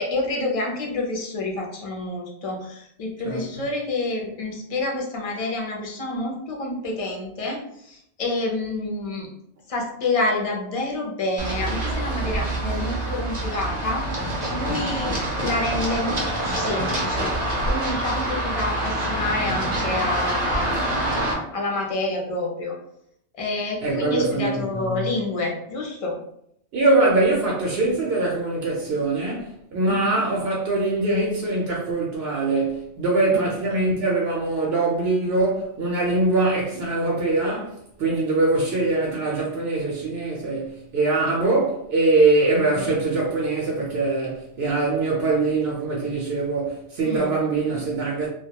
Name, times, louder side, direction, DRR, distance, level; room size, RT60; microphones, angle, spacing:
voice 1, 0.0-9.3 9.7-14.0 14.5-17.4 17.7-20.8 21.5-22.7 23.3-26.2 29.9-30.2 33.3-33.9 42.6-42.9 47.0-47.3, left 2 dB, 50° left, 0.4 m, -28 dB
voice 2, 3.2-3.6 23.8-25.1 26.7-48.3, right 2 dB, 65° right, 0.8 m, -23 dB
Run, 11.4-21.3, right 1 dB, 35° right, 0.6 m, -26 dB
2.2 x 2.1 x 2.8 m
omnidirectional pair, 1.2 m